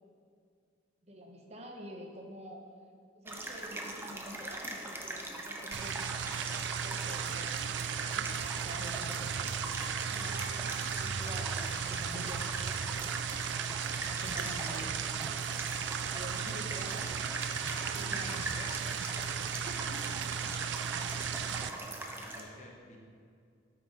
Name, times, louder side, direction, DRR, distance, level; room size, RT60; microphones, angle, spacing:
voice 1, 1.0-2.7 3.1-9.3 10.0-10.4 11.0-13.2 14.0-14.9 16.0-17.2 17.7-18.8 19.5-20.0 21.7-21.9, equal, 35° right, 1 dB, 1.2 m, -48 dB
sound 1, 3.3-22.4, right 1 dB, 10° right, 0.9 m, -41 dB
sound 2, 5.7-21.7, right 7 dB, 65° right, 0.4 m, -36 dB
voice 2, 20.0-23.0, left 1 dB, 40° left, -1 dB, 1.7 m, -54 dB
13.0 x 6.0 x 5.2 m, 2.3 s
head